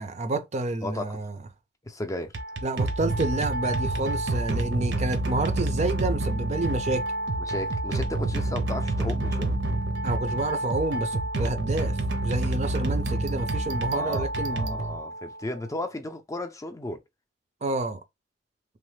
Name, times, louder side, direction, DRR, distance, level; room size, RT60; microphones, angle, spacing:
voice 1, 0.0-1.3 2.6-7.1 10.0-12.0 12.2-14.8 17.6-18.0, right 2 dB, 40° right, 0.5 m, -29 dB
voice 2, 0.8-1.2 1.8-2.4 7.4-9.5 13.9-17.0, left 1 dB, 20° left, 0.5 m, -34 dB
sound 1, 2.2-15.4, right 2 dB, 75° right, 0.7 m, -28 dB
3.2 x 2.0 x 3.1 m
head